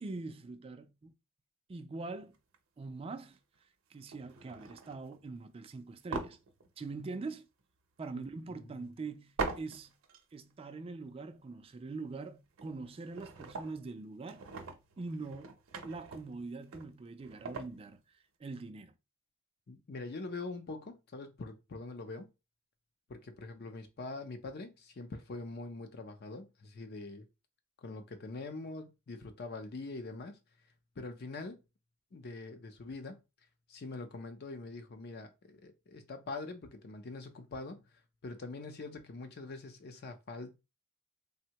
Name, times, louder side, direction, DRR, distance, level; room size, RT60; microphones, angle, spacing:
voice 1, 0.0-1.1 1.7-2.4 2.8-3.4 3.9-6.4 6.8-7.5 8.0-9.9 10.3-14.5 15.0-15.6 15.8-18.0 18.4-18.9, right 3 dB, 30° right, 0.3 m, -43 dB
sound 1, 2.3-2.6 3.4-3.6 4.1-5.2 6.1-7.3 7.6-7.7 9.4-10.2 10.5-10.6 12.3-12.4 12.6-13.9 14.3-17.8, right 3 dB, 85° right, 0.6 m, -42 dB
voice 2, 8.1-8.8 19.7-22.3 23.1-27.3 27.8-30.4 31.0-31.6 32.1-33.2 33.7-40.6, left 3 dB, 55° left, 0.5 m, -44 dB
3.5 x 2.1 x 2.8 m
head